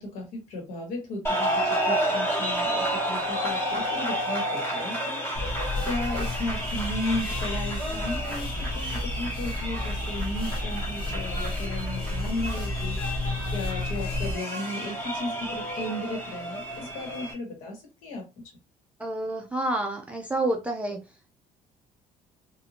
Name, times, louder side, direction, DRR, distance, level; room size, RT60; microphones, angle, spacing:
voice 1, 0.0-18.3, left 1 dB, 80° left, 1 dB, 1.3 m, -35 dB
sound 1, 1.2-17.3, equal, 20° left, 1.1 m, -31 dB
sound 2, 5.3-14.4, left 2 dB, 40° left, 0.7 m, -32 dB
voice 2, 19.0-21.0, right 1 dB, 10° right, 1 dB, 0.3 m, -28 dB
2.7 x 2.5 x 2.7 m, 0.26 s
cardioid pair, 160°, 13 cm